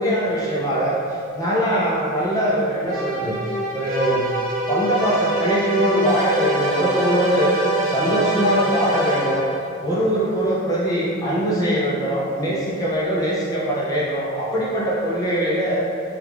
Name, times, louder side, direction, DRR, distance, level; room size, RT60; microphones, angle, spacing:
voice 1, 0.0-4.3 4.7-7.6 7.8-9.5 9.8-15.8, right 1 dB, 15° left, -7 dB, 0.4 m, -22 dB
sound 1, 2.9-9.7, right 1 dB, 90° right, 0.6 m, -24 dB
3.1 x 2.3 x 3.3 m, 2.4 s
head